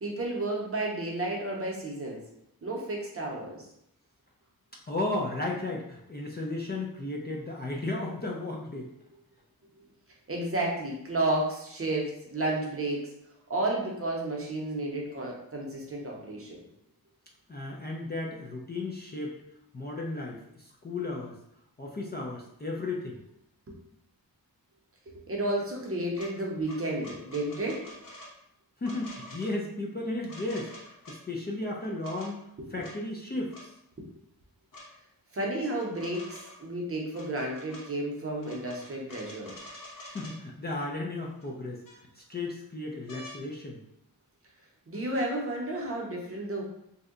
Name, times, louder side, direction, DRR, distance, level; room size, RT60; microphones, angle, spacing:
voice 1, 0.0-2.2 2.6-3.6 10.3-13.0 13.5-16.6 23.7-23.8 25.1-28.0 35.3-39.5 44.9-46.6, right 1 dB, 40° right, -2 dB, 0.7 m, -32 dB
voice 2, 4.9-8.9 17.5-19.3 19.7-21.4 21.8-23.2 28.8-32.4 32.7-33.7 40.1-41.8 42.2-43.8, left 2 dB, 30° left, -2 dB, 0.4 m, -34 dB
sound 1, 26.1-26.3 26.7-28.3 28.8-29.5 30.3-31.2 31.8-32.3 32.8-32.9 33.5-33.7 34.7-34.8 35.7-36.6 37.1-37.8 38.4-40.4 41.4-41.5 41.8-42.4 43.1-43.4 44.9-45.0, left 1 dB, 60° left, 0.9 m, -47 dB
2.7 x 2.1 x 3.6 m, 0.78 s
wide cardioid pair, 120°, 37 cm